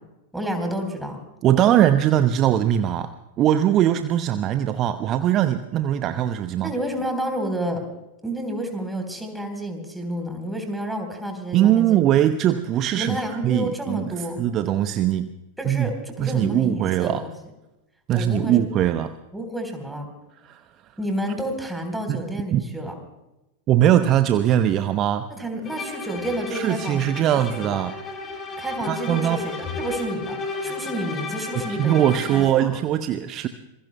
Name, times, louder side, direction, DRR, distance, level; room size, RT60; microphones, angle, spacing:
voice 1, 0.3-1.2 6.6-7.8 8.2-12.0 13.0-14.4 15.6-17.3 18.1-18.6 19.3-20.0 21.0-22.9 25.3-27.0 27.3-27.8 28.6-30.4 30.6-32.7, right 1 dB, 5° right, 4 dB, 3.9 m, -30 dB
voice 2, 1.4-6.7 11.5-15.3 15.6-15.9 16.2-17.2 18.1-19.1 20.4-20.6 22.1-22.2 22.5-22.6 23.7-25.3 26.5-27.9 28.9-29.4 30.7-30.8 31.6-33.5, right 11 dB, 35° right, 10 dB, 0.8 m, -21 dB
Bowed string instrument, 25.7-32.6, left 3 dB, 25° left, 3.3 m, -33 dB
27.0 x 22.5 x 2.2 m, 0.96 s
figure-of-eight pair, 90°, 0 cm